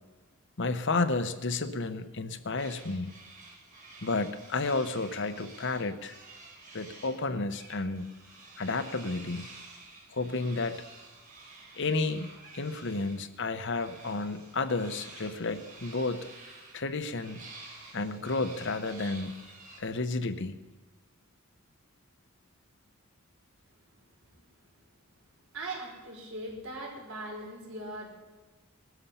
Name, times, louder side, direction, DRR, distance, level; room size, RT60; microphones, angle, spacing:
voice 1, 0.6-3.1 4.0-6.1 6.7-8.0 8.6-9.5 10.1-10.8 11.8-12.3 12.5-16.3 16.7-17.4 17.9-19.4 19.8-20.6, left 3 dB, 60° left, 10 dB, 0.9 m, -31 dB
sound 1, 2.6-7.2 7.5-13.2 13.7-19.8, right 3 dB, 40° right, 5.0 m, -50 dB
voice 2, 25.5-28.1, right 1 dB, 70° right, 0 dB, 4.7 m, -40 dB
19.5 x 13.0 x 5.6 m, 1.2 s
head